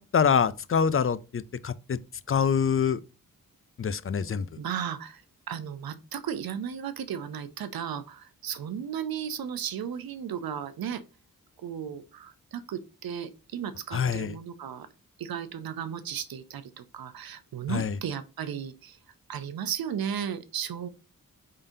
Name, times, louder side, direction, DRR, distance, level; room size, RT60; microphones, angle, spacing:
voice 1, 0.0-2.0 2.3-3.0 3.8-4.5 13.9-14.4 17.7-18.0, left 7 dB, 40° left, 0.4 m, -25 dB
voice 2, 4.6-5.2 5.5-11.0 11.6-14.9 15.2-19.0 19.3-20.9, right 8 dB, 90° right, 0.7 m, -35 dB
5.0 x 3.8 x 2.7 m
cardioid pair, 65°, 35 cm